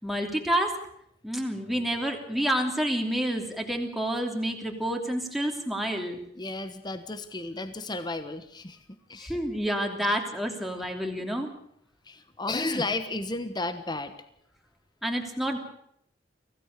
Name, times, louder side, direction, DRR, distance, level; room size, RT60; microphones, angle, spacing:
voice 1, 0.0-0.7 1.2-6.2 9.2-11.5 15.0-15.6, equal, ahead, 2 dB, 3.0 m, -29 dB
voice 2, 6.3-9.4 10.0-10.2 12.0-14.1, left 2 dB, 25° left, 10 dB, 1.3 m, -33 dB
25.0 x 17.0 x 6.7 m, 0.72 s
head